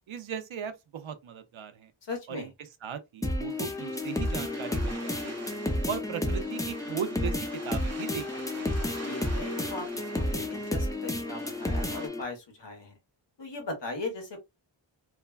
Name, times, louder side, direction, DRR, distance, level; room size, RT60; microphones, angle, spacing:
voice 1, 0.1-1.9 2.3-2.5 2.8-5.5 5.9-8.2 8.5-8.7, right 7 dB, 85° right, 0.6 m, -37 dB
voice 2, 2.0-2.5 9.0-13.0 13.4-14.4, left 2 dB, 65° left, 1.3 m, -38 dB
sound 1, 3.2-12.2, left 1 dB, 10° left, 0.5 m, -31 dB
sound 2, 3.5-12.1, right 3 dB, 35° right, 0.9 m, -46 dB
3.2 x 2.2 x 2.3 m
wide cardioid pair, 60°, 46 cm